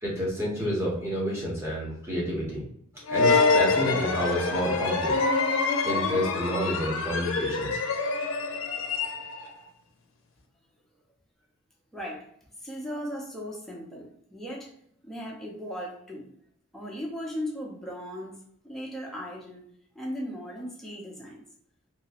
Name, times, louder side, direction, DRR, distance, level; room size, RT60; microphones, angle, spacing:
voice 1, 0.0-2.6 3.1-5.1 5.8-7.8, equal, 15° right, -5 dB, 1.2 m, -29 dB
sound 1, 3.1-9.5, left 4 dB, 75° left, 0.5 m, -26 dB
voice 2, 11.9-12.3 12.6-14.7 15.0-16.3 16.7-19.6 19.9-21.4, equal, ahead, -3 dB, 0.8 m, -37 dB
3.0 x 2.9 x 2.9 m, 0.67 s
head